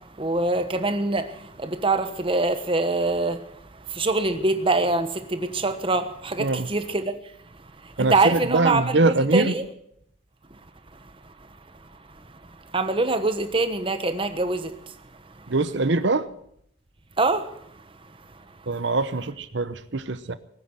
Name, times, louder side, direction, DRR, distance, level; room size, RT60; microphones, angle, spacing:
voice 1, 0.2-3.4 3.9-7.1 8.1-9.6 12.7-14.7 17.2-17.5, right 2 dB, 25° right, 1.1 m, -24 dB
voice 2, 6.4-6.7 8.0-9.6 15.5-16.3 18.7-20.3, right 3 dB, 60° right, 0.9 m, -23 dB
20.0 x 9.4 x 7.7 m
head